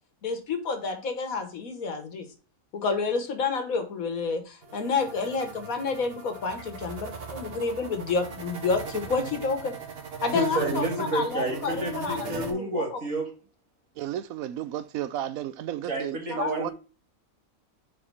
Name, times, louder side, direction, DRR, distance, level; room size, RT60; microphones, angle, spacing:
voice 1, 0.2-2.3 2.7-9.7 10.2-12.8 16.3-16.7, left 4 dB, 80° left, 1.8 m, -29 dB
sound 1, 4.6-12.5, right 5 dB, 45° right, 1.3 m, -39 dB
voice 2, 10.3-13.3 15.9-16.7, right 1 dB, 70° right, 2.3 m, -30 dB
voice 3, 14.0-16.7, right 11 dB, 85° right, 1.0 m, -33 dB
5.0 x 4.6 x 5.3 m
omnidirectional pair, 1.4 m